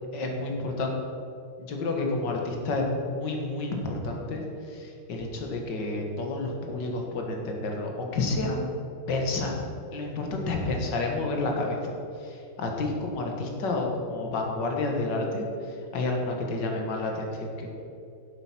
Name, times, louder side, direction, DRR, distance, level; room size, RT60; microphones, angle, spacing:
voice 1, 0.1-0.9 1.6-8.6 9.1-9.6 9.9-17.7, left 2 dB, 60° left, 1 dB, 1.9 m, -30 dB
8.1 x 7.9 x 5.9 m, 2.6 s
omnidirectional pair, 2.3 m